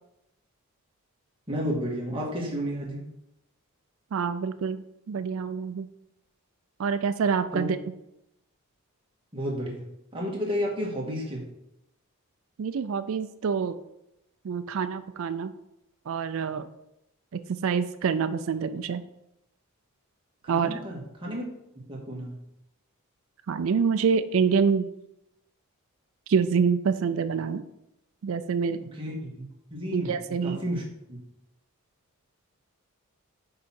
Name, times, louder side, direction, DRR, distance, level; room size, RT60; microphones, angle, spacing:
voice 1, 1.5-3.0 7.5-7.7 9.3-9.8 10.1-11.4 20.4-21.4 21.9-22.3 28.9-29.4 29.7-30.2 30.4-30.8 31.1-31.2, equal, 25° right, -3 dB, 1.7 m, -31 dB
voice 2, 4.1-5.9 6.8-7.8 12.6-13.8 14.4-15.5 16.1-16.7 17.3-19.0 20.5-20.8 23.5-24.9 26.3-27.6 28.2-28.8 29.9-30.6, right 6 dB, 65° right, 10 dB, 0.4 m, -26 dB
6.6 x 4.7 x 4.3 m, 0.86 s
head